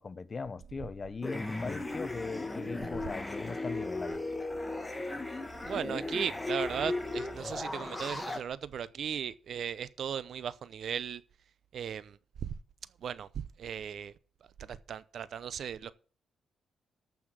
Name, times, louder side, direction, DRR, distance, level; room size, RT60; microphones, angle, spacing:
voice 1, 0.0-4.2, left 4 dB, 35° left, 0.7 m, -39 dB
sound 1, 1.2-8.4, left 2 dB, 10° left, 1.8 m, -36 dB
voice 2, 5.6-11.2 11.7-12.5 13.0-14.1 14.6-15.9, right 8 dB, 65° right, 0.8 m, -37 dB
14.0 x 5.9 x 6.1 m
cardioid pair, 110°, 0 cm